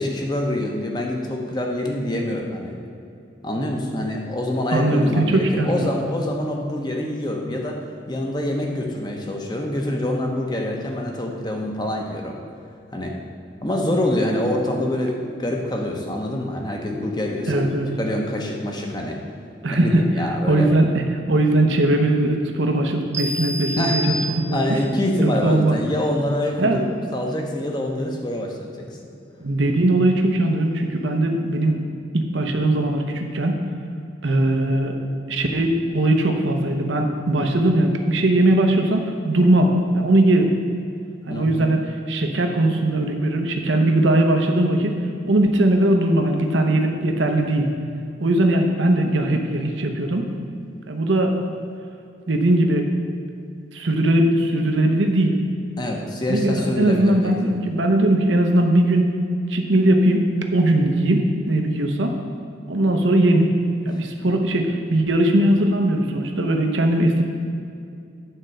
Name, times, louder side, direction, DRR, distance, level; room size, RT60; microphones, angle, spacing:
voice 1, 0.0-2.8 3.4-7.8 8.1-12.4 12.9-13.1 13.6-17.7 18.0-19.2 19.7-20.7 23.8-24.0 24.5-26.9 27.1-28.9 41.3-41.6 55.8-57.4 63.9-64.4, left 1 dB, 20° left, 1 dB, 0.9 m, -25 dB
voice 2, 4.7-5.9 17.5-17.9 19.6-20.0 20.5-24.8 25.2-25.8 26.6-26.8 29.4-31.8 32.1-33.6 34.2-35.0 35.3-40.5 41.3-45.0 45.3-47.7 48.2-50.3 50.9-51.4 52.3-52.9 53.7-55.4 56.3-59.1 59.5-60.2 60.5-62.2 62.7-63.5 63.9-67.2, right 1 dB, 90° right, 3 dB, 0.9 m, -19 dB
sound 1, 13.8-14.8 16.8-17.8 19.8-20.8, left 4 dB, 80° left, 2.3 m, -33 dB
sound 2, 23.1-24.9, equal, 15° right, 0.7 m, -29 dB
9.6 x 4.4 x 6.5 m, 2.5 s
head